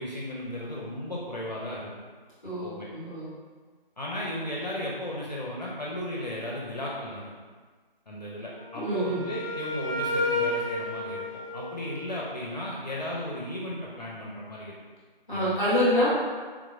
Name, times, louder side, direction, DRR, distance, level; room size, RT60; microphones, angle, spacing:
voice 1, 0.0-1.9 2.6-2.9 4.0-7.3 8.1-14.8 15.3-15.6, left 1 dB, 45° left, -4 dB, 0.5 m, -35 dB
voice 2, 2.4-3.3 8.7-9.2 15.3-16.1, equal, 5° right, -10 dB, 0.9 m, -26 dB
Wind instrument woodwind instrument, 8.5-12.4, left 1 dB, 35° right, 1.1 m, -32 dB
3.6 x 3.0 x 2.4 m, 1.5 s
figure-of-eight pair, 155°, 29 cm